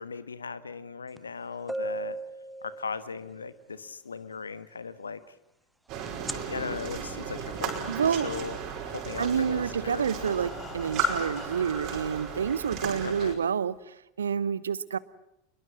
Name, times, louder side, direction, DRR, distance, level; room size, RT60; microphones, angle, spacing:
voice 1, 0.0-2.2 2.6-5.2 6.0-8.6 8.9-10.1 13.0-13.4, left 5 dB, 75° left, 14 dB, 1.3 m, -38 dB
sound 1, 1.2-1.3 1.7-3.4 6.1-6.3, right 2 dB, ahead, 0.9 m, -35 dB
sound 2, 5.9-13.3, right 4 dB, 40° right, 5.5 m, -35 dB
voice 2, 7.9-8.3 9.2-15.0, right 7 dB, 70° right, 19 dB, 0.9 m, -28 dB
Breathing, 9.1-12.0 12.8-12.9 13.2-13.3 13.8-13.9, left 5 dB, 25° left, 2.7 m, -47 dB
27.0 x 22.0 x 7.5 m, 0.81 s
figure-of-eight pair, 85°, 0 cm